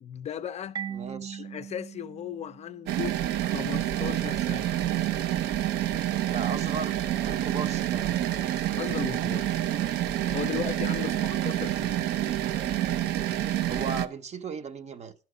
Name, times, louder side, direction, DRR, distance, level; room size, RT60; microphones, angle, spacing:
voice 1, 0.0-0.8 1.4-4.7 8.8-9.7 10.3-12.1, left 9 dB, 40° left, 0.4 m, -36 dB
Marimba xylophone, 0.7-3.4, right 8 dB, 25° right, 0.3 m, -40 dB
voice 2, 0.9-1.4 6.3-8.2 11.0-11.3 13.7-15.1, right 5 dB, 40° right, 0.8 m, -37 dB
sound 1, 2.9-14.1, right 12 dB, 80° right, 0.5 m, -28 dB
10.5 x 5.9 x 4.8 m
cardioid pair, 110°, 17 cm